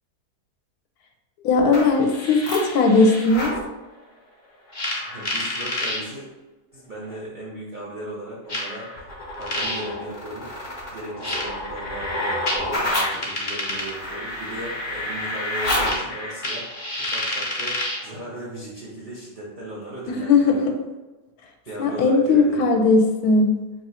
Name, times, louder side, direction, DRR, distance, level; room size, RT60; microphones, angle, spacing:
voice 1, 1.4-3.6 20.1-20.7 21.8-23.6, left 3 dB, 75° left, 3 dB, 1.0 m, -18 dB
sound 1, 1.6-3.6 4.7-6.0 7.1-7.2 8.5-18.1, left 1 dB, 45° left, 0.6 m, -28 dB
voice 2, 5.0-6.3 6.7-9.1 9.4-10.5 10.9-20.7 21.7-22.8, right 1 dB, 50° right, -7 dB, 0.6 m, -37 dB
3.0 x 2.4 x 4.1 m, 1.2 s
omnidirectional pair, 1.7 m